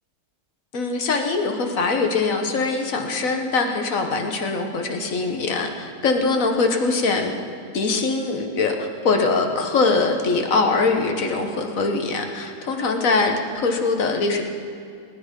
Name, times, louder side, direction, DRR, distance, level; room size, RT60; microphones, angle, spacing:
voice 1, 0.7-7.3 7.7-14.4, left 3 dB, 45° left, 4 dB, 1.3 m, -22 dB
19.5 x 9.8 x 5.2 m, 2.4 s
omnidirectional pair, 2.2 m